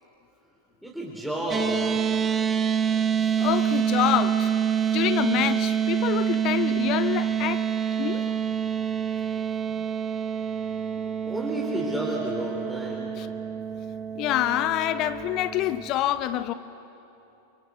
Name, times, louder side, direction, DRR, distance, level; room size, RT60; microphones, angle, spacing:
voice 1, 0.8-2.0 11.3-13.1, right 1 dB, ahead, 3.6 m, -31 dB
sound 1, 1.5-15.9, right 8 dB, 20° right, 1.2 m, -27 dB
voice 2, 3.4-4.5 4.9-7.6 8.0-8.4 13.2-13.3 14.2-16.5, left 13 dB, 40° left, 0.6 m, -26 dB
29.5 x 25.0 x 6.9 m
figure-of-eight pair, 90°, 0 cm